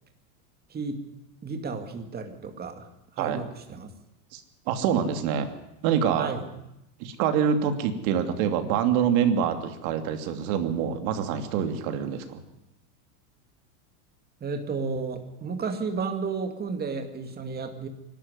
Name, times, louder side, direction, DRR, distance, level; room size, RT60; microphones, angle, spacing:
voice 1, 0.7-1.0 1.4-2.9 3.1-3.9 6.2-6.5 14.4-17.9, right 4 dB, 20° right, 6 dB, 2.2 m, -32 dB
voice 2, 4.3-5.5 5.8-6.3 7.0-12.4, right 8 dB, 60° right, 7 dB, 2.8 m, -26 dB
25.0 x 12.0 x 9.8 m, 0.87 s
supercardioid pair, 145°, 47 cm